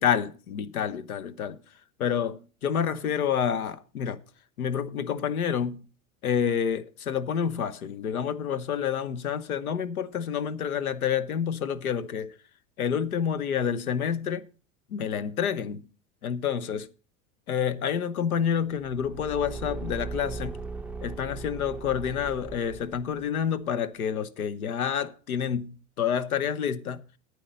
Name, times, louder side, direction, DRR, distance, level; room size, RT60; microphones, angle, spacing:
voice 1, 0.0-1.6 2.0-4.2 4.6-5.9 6.2-12.4 12.8-14.5 14.9-15.8 16.2-16.9 17.5-20.6 21.0-27.0, left 8 dB, 90° left, 1.0 m, -28 dB
Car / Engine, 18.7-23.3, right 4 dB, 5° right, 0.7 m, -38 dB
10.0 x 8.9 x 5.2 m
hypercardioid pair, 85°, 42 cm